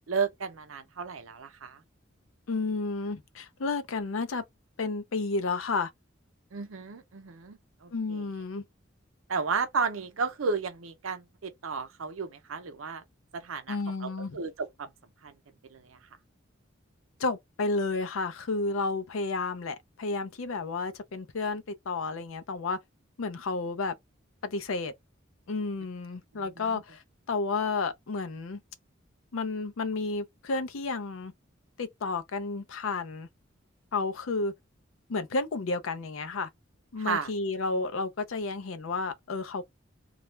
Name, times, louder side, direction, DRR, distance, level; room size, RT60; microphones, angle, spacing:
voice 1, 0.1-1.8 6.5-8.3 9.3-13.0 13.3-14.9 15.2-15.4 15.7-16.0 26.3-26.8 37.0-37.3, right 5 dB, 85° right, 0.6 m, -33 dB
voice 2, 2.5-4.4 4.8-5.9 7.9-8.6 13.7-14.4 17.2-22.8 23.2-23.9 24.4-24.9 25.5-27.0 27.3-28.6 29.3-31.3 31.8-33.3 33.9-34.5 35.1-36.5 36.9-39.6, left 3 dB, 80° left, 0.5 m, -31 dB
2.3 x 2.1 x 3.0 m
head